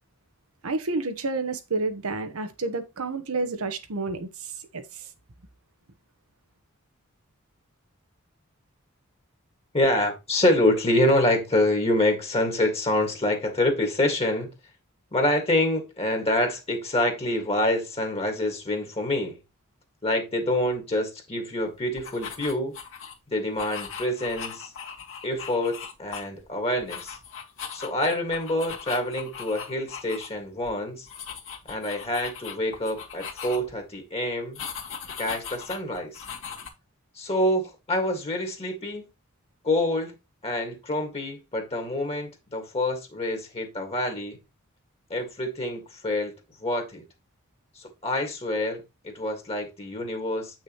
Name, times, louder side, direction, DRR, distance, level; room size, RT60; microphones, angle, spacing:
voice 1, 0.6-5.1, right 3 dB, 90° right, 1.1 m, -30 dB
voice 2, 9.7-14.5 15.1-19.4 20.0-22.7 23.3-24.7 25.2-27.2 27.7-31.1 31.7-34.6 35.2-36.2 37.2-37.6 37.9-39.0 39.6-40.1 40.4-44.4 45.1-46.3 46.6-47.0 48.0-50.6, left 1 dB, 30° left, 1.9 m, -26 dB
sound 1, 21.9-23.2 23.6-26.5 26.8-30.3 30.6-30.7 31.1-33.8 34.5-36.7, left 7 dB, 65° left, 1.8 m, -39 dB
8.1 x 6.0 x 3.0 m
head